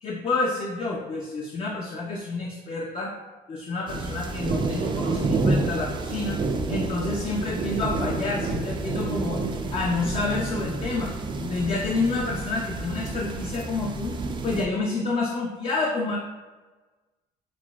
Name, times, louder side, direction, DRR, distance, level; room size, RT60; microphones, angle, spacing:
voice 1, 0.0-3.1 3.5-6.4 6.7-11.1 11.4-14.2 14.4-16.2, left 3 dB, 35° left, -1 dB, 0.5 m, -29 dB
sound 1, 3.9-14.7, right 3 dB, 30° right, 0.4 m, -29 dB
5.9 x 2.2 x 2.3 m, 1.3 s
cardioid pair, 110°, 17 cm